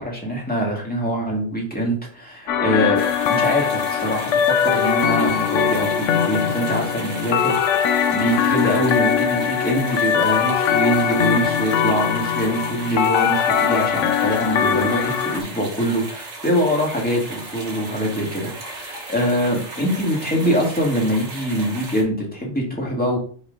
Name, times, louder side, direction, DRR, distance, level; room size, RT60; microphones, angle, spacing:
voice 1, 0.0-3.0 3.3-23.2, equal, 5° left, -2 dB, 2.0 m, -24 dB
sound 1, 2.5-15.4, left 8 dB, 80° left, 0.9 m, -21 dB
sound 2, 3.0-22.0, right 2 dB, 70° right, 1.9 m, -36 dB
5.3 x 4.2 x 5.2 m, 0.43 s
omnidirectional pair, 1.3 m